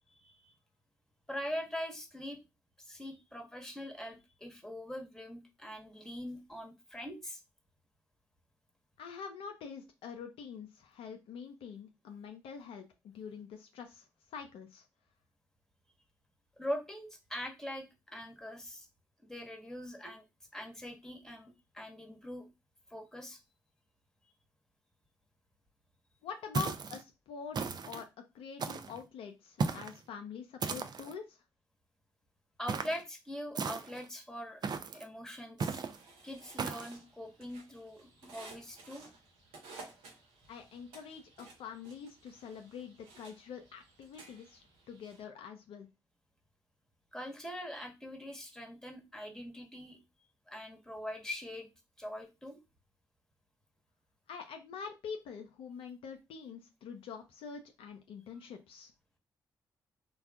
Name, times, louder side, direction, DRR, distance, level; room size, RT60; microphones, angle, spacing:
voice 1, 0.2-0.5 1.3-2.4 2.8-7.4 16.6-18.9 19.2-20.2 20.5-22.5 22.9-23.4 32.6-35.8 36.2-39.0 47.1-50.0 50.5-51.7 52.0-52.6, equal, 5° left, 3 dB, 1.1 m, -42 dB
voice 2, 9.0-14.1 14.3-14.8 26.2-27.6 27.8-28.1 28.3-31.4 40.5-44.6 44.9-45.9 54.3-58.9, left 6 dB, 70° left, 4 dB, 0.4 m, -45 dB
sound 1, 26.5-27.0 27.5-28.0 28.6-29.0 29.6-30.0 30.6-31.1 32.7-33.0 33.5-34.1 34.6-35.0 35.6-36.0 36.6-36.9, right 5 dB, 45° right, 0.4 m, -36 dB
sound 2, 35.6-45.2, right 3 dB, 80° right, 0.7 m, -55 dB
3.3 x 2.2 x 2.4 m, 0.25 s
hypercardioid pair, 40°, 10 cm